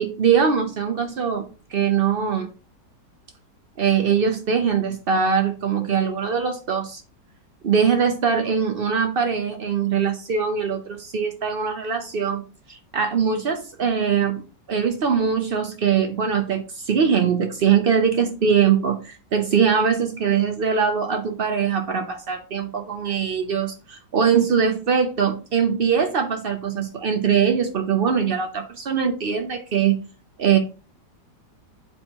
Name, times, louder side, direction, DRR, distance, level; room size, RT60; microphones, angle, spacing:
voice 1, 0.0-2.5 3.8-7.0 7.6-12.4 12.7-14.4 14.7-30.0 30.4-30.6, right 7 dB, 80° right, 4 dB, 0.5 m, -22 dB
8.1 x 4.7 x 2.9 m, 0.35 s
omnidirectional pair, 2.0 m